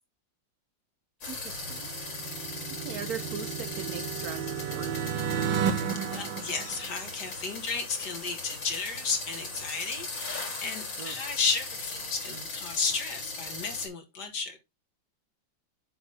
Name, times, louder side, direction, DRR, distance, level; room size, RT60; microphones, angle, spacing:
sound 1, 1.2-13.9, left 3 dB, 80° left, 3.5 m, -39 dB
voice 1, 1.2-1.9 2.8-5.1 11.0-11.1, right 7 dB, 60° right, 1.1 m, -40 dB
sound 2, 1.6-7.4, right 8 dB, 85° right, 1.6 m, -33 dB
voice 2, 5.7-14.6, left 5 dB, 60° left, 2.2 m, -33 dB
7.3 x 3.4 x 5.5 m
omnidirectional pair, 2.0 m